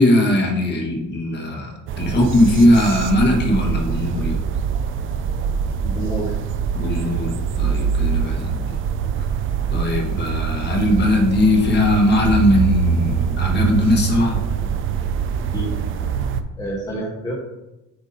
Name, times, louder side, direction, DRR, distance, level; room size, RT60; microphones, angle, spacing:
voice 1, 0.0-4.4 6.7-8.6 9.7-14.4, left 1 dB, 30° left, 1 dB, 1.3 m, -19 dB
sound 1, 1.9-16.4, right 7 dB, 40° right, 0.4 m, -23 dB
voice 2, 5.8-6.3 15.5-15.8 16.6-17.3, right 1 dB, 10° left, -4 dB, 0.9 m, -28 dB
7.9 x 2.7 x 5.4 m, 0.97 s
cardioid pair, 155°, 34 cm